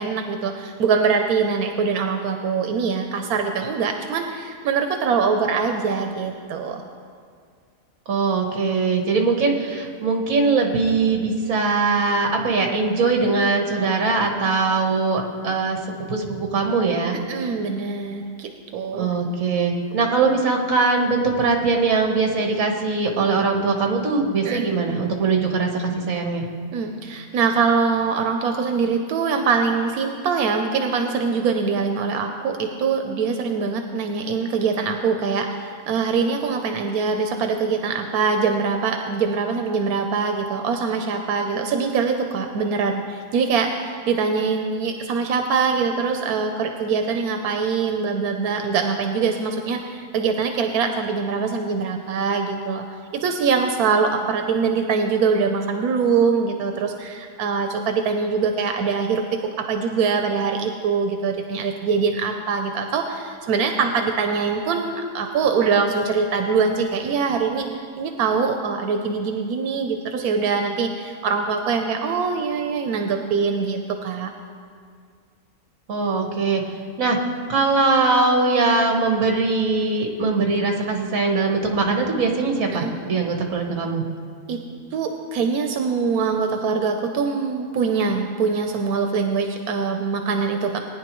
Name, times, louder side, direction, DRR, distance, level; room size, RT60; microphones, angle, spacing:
voice 1, 0.0-6.8 17.3-19.1 24.4-24.7 26.7-52.9 53.1-59.2 59.6-74.3 82.7-82.9 84.5-84.6 84.9-90.8, right 5 dB, 90° right, 4 dB, 1.2 m, -23 dB
voice 2, 8.1-17.2 18.9-26.4 75.9-76.6 77.0-77.2 77.5-84.0, right 4 dB, 65° right, 2 dB, 1.6 m, -21 dB
19.5 x 9.8 x 3.1 m, 2.2 s
omnidirectional pair, 1.5 m